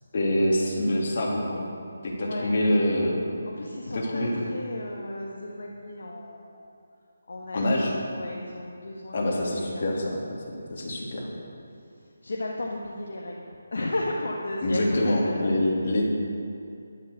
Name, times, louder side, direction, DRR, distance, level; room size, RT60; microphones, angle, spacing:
voice 1, 0.1-1.6 2.0-3.3 3.9-4.4 7.5-8.0 9.1-10.2 10.7-11.3 14.6-16.0, left 1 dB, 45° left, -3 dB, 3.2 m, -25 dB
voice 2, 3.6-4.2 4.5-6.6 7.3-7.6 8.1-9.2 9.5-9.8 12.2-13.3 13.7-15.1, left 2 dB, 60° left, -2 dB, 1.6 m, -34 dB
12.0 x 11.5 x 6.5 m, 2.6 s
figure-of-eight pair, 150°, 0 cm